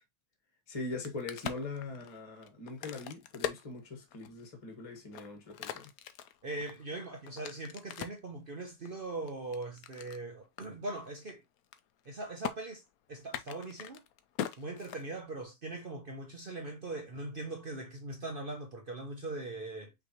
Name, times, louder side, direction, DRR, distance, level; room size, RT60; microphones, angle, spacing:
voice 1, 0.7-5.9, left 3 dB, 20° left, 1.2 m, -41 dB
Crack, 0.8-4.5 5.0-8.3 8.8-10.2 10.6-10.7 11.0-11.3 11.6-12.1 12.4-12.5 13.2-15.4, left 10 dB, 70° left, 0.8 m, -41 dB
voice 2, 6.4-11.4 12.1-12.8 13.1-14.0 14.6-19.9, right 2 dB, 65° right, 0.5 m, -40 dB
5.6 x 3.2 x 2.9 m
omnidirectional pair, 2.1 m